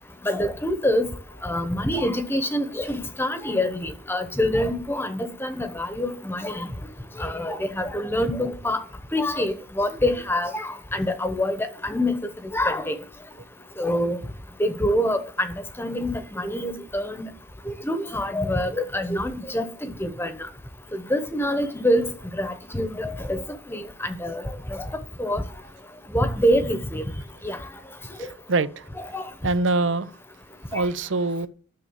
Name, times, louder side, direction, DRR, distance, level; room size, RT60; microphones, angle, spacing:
voice 1, 0.2-1.1 1.4-6.7 7.2-8.8 9.1-12.2 12.5-12.9 13.8-14.2 14.6-17.3 17.7-20.3 20.9-23.4 23.7-24.4 24.7-24.9 25.2-25.4 26.1-27.0 27.4-27.6 29.0-29.2 30.7-30.9, left 1 dB, 10° left, 1.0 m, -26 dB
voice 2, 28.2-28.9 29.4-30.1 30.7-31.5, right 3 dB, 80° right, 0.6 m, -24 dB
10.5 x 6.5 x 8.0 m
head